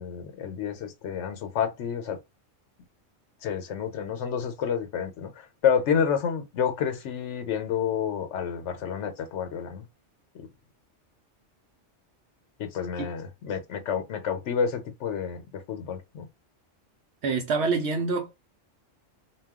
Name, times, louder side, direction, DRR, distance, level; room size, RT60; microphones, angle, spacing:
voice 1, 0.0-2.2 3.4-9.8 10.3-10.5 12.6-16.3, left 7 dB, 75° left, 1.0 m, -29 dB
voice 2, 17.2-18.3, right 4 dB, 70° right, 0.8 m, -26 dB
2.3 x 2.3 x 3.5 m
omnidirectional pair, 1.3 m